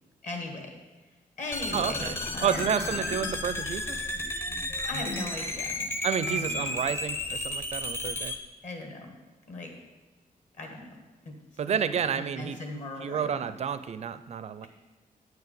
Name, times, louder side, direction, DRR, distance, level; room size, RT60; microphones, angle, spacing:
voice 1, 0.2-0.8 1.4-2.8 4.9-5.9 6.3-6.8 8.6-9.2 9.4-9.7 10.5-11.3 11.6-13.5, left 2 dB, 55° left, 2 dB, 1.5 m, -38 dB
sound 1, 1.5-8.4, left 1 dB, 15° left, 0.6 m, -33 dB
voice 2, 1.7-2.2 2.4-4.0 6.0-8.3 11.6-12.6 13.0-14.7, right 8 dB, 45° right, 12 dB, 0.4 m, -30 dB
sound 2, 2.1-5.2 5.7-6.7, left 2 dB, 85° left, 1.8 m, -41 dB
8.0 x 4.7 x 6.7 m, 1.3 s
wide cardioid pair, 170°, 15 cm